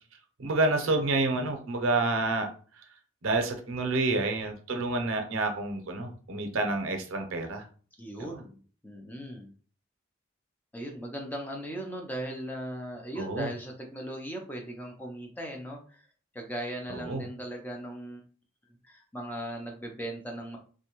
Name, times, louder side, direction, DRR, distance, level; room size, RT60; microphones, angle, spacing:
voice 1, 0.4-2.5 3.2-7.6 8.2-8.3 13.2-13.5 16.9-17.2, right 2 dB, 80° right, 5 dB, 0.6 m, -28 dB
voice 2, 8.0-8.6 8.8-9.5 10.7-16.1 16.3-18.2 18.7-20.6, right 1 dB, 10° left, 1 dB, 0.4 m, -38 dB
2.5 x 2.2 x 2.9 m, 0.41 s
head